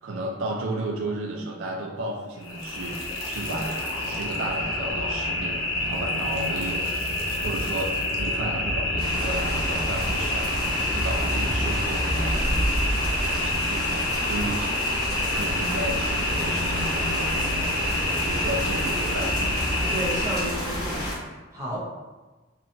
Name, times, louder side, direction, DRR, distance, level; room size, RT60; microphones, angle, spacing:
voice 1, 0.0-3.0 3.2-6.8 7.4-12.6 13.2-14.8 15.3-17.3 18.2-19.5, right 1 dB, 80° right, 1 dB, 0.4 m, -33 dB
sound 1, 2.4-20.4, left 1 dB, 85° left, 0.6 m, -28 dB
sound 2, 9.0-21.1, equal, 45° left, 1.2 m, -30 dB
voice 2, 19.9-21.8, right 1 dB, 15° right, -7 dB, 0.6 m, -32 dB
2.8 x 2.2 x 2.5 m, 1.2 s
head